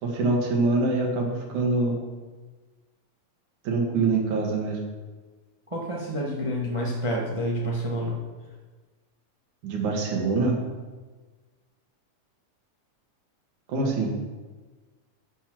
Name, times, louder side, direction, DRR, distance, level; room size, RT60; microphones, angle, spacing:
voice 1, 0.0-2.0 3.6-4.9 9.6-10.6 13.7-14.1, right 3 dB, 85° right, 1 dB, 3.3 m, -24 dB
voice 2, 5.7-8.2, equal, 35° right, -2 dB, 0.4 m, -28 dB
11.0 x 7.0 x 6.1 m, 1.3 s
omnidirectional pair, 3.4 m